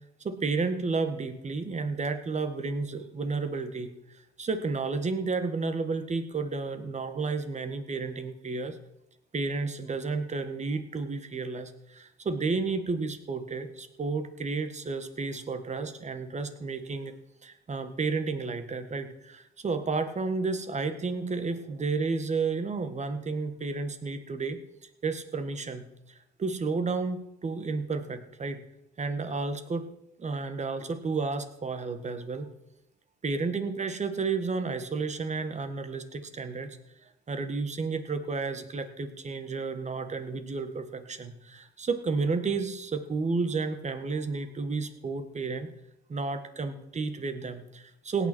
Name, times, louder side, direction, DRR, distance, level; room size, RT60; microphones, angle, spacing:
voice 1, 0.2-3.9 4.4-8.8 9.3-17.1 17.4-28.6 29.0-29.9 30.2-32.5 33.2-36.8 37.0-45.7 46.1-48.3, right 4 dB, 35° right, 9 dB, 1.8 m, -32 dB
17.5 x 9.5 x 4.6 m, 0.85 s
cardioid pair, 90°, 20 cm